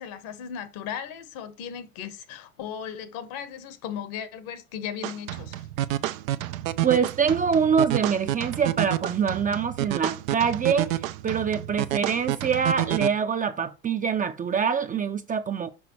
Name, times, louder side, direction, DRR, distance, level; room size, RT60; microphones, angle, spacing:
voice 1, 0.0-5.7, left 8 dB, 60° left, 1.3 m, -36 dB
sound 1, 5.0-13.1, right 14 dB, 85° right, 0.6 m, -29 dB
voice 2, 6.8-15.7, right 6 dB, 20° right, 0.5 m, -25 dB
6.1 x 5.1 x 3.0 m
hypercardioid pair, 90°, 39 cm